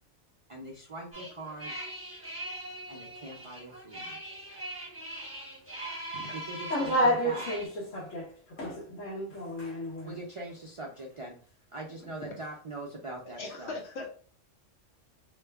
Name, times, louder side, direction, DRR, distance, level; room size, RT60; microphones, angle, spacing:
voice 1, 0.5-1.8 2.9-4.2 6.3-7.5 10.0-11.4 11.7-13.7, right 2 dB, 60° right, 0.3 m, -42 dB
sound 1, 1.1-7.7, right 1 dB, 10° right, 1.1 m, -41 dB
voice 2, 6.7-7.7 7.9-8.3 8.6-10.1, equal, 90° left, 1.6 m, -30 dB
voice 3, 13.4-14.2, left 3 dB, 65° left, 1.0 m, -39 dB
3.1 x 2.1 x 3.4 m
omnidirectional pair, 1.3 m